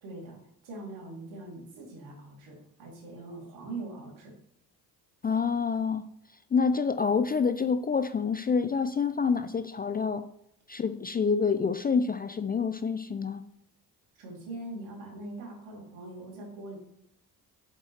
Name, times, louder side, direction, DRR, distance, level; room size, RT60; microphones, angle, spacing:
voice 1, 0.0-4.3 14.2-16.8, right 2 dB, 65° right, -1 dB, 3.2 m, -42 dB
voice 2, 5.2-6.0 6.5-10.2 10.7-13.4, left 5 dB, 20° left, 10 dB, 0.4 m, -27 dB
8.8 x 7.4 x 3.3 m, 0.75 s
figure-of-eight pair, 45°, 49 cm